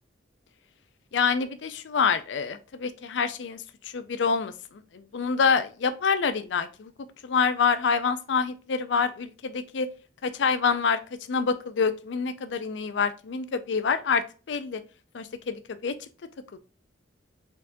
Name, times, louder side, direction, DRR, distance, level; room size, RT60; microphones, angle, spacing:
voice 1, 1.1-4.5 4.9-6.9 7.2-9.9 10.2-11.0 11.3-14.8 15.1-15.9 16.5-16.6, left 5 dB, 75° left, 11 dB, 0.4 m, -26 dB
4.6 x 3.6 x 2.5 m, 0.35 s
head